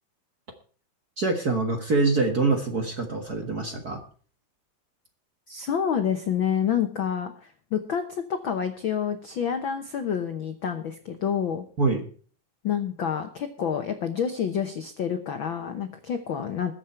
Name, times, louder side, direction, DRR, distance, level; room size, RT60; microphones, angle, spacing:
voice 1, 1.2-4.0 11.8-12.0, right 3 dB, 40° right, 4 dB, 1.5 m, -25 dB
voice 2, 5.5-11.6 12.6-16.7, left 8 dB, 70° left, 7 dB, 1.1 m, -28 dB
21.0 x 7.4 x 4.5 m, 0.43 s
omnidirectional pair, 3.7 m